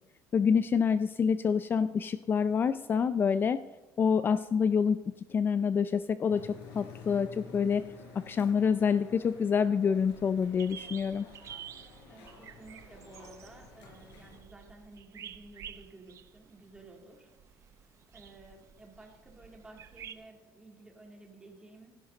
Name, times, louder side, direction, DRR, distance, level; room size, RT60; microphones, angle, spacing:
voice 1, 0.3-3.6 4.0-7.8 8.1-11.3, left 6 dB, 30° left, 13 dB, 0.4 m, -27 dB
sound 1, 6.3-14.4, left 4 dB, 90° left, 4.9 m, -51 dB
sound 2, 9.8-20.1, right 9 dB, 50° right, 0.8 m, -50 dB
voice 2, 12.1-17.7 18.1-22.0, right 2 dB, 15° right, 1 dB, 3.0 m, -53 dB
16.0 x 11.5 x 4.0 m, 1.2 s
cardioid pair, 115°, 7 cm